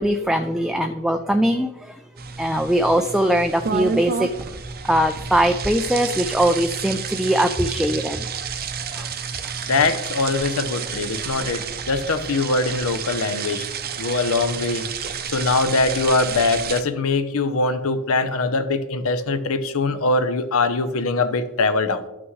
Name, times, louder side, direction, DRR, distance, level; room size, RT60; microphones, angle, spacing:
voice 1, 0.0-1.7 2.4-4.3 4.9-8.2 8.9-9.1, right 1 dB, ahead, 6 dB, 0.3 m, -21 dB
sound 1, 2.2-16.8, right 6 dB, 45° right, 0.6 m, -30 dB
voice 2, 9.7-13.7 14.0-14.9 15.3-22.0, left 3 dB, 65° left, 10 dB, 0.7 m, -22 dB
12.5 x 6.0 x 3.2 m, 1.0 s
head